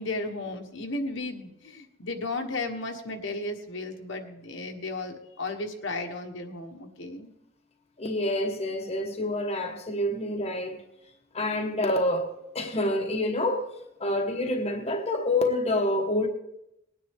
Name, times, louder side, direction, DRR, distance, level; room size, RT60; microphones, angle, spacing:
voice 1, 0.0-7.3, left 2 dB, 65° left, 1.4 m, -34 dB
voice 2, 8.0-10.8 11.3-13.7 14.0-16.3, left 1 dB, 30° left, 1.1 m, -27 dB
20.0 x 9.7 x 3.6 m
head